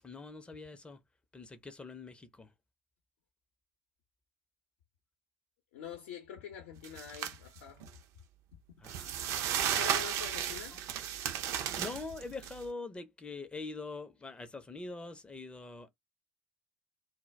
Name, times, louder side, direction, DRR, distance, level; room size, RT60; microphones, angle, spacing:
voice 1, 0.0-1.0 1.3-2.5 8.8-9.9 11.6-15.9, left 3 dB, 15° left, 0.5 m, -44 dB
voice 2, 5.7-7.9 9.7-10.8, left 9 dB, 65° left, 0.6 m, -45 dB
sound 1, 6.8-7.3 7.8-7.9 8.8-12.5, right 9 dB, 50° right, 0.5 m, -34 dB
2.2 x 2.0 x 3.2 m
figure-of-eight pair, 65°, 7 cm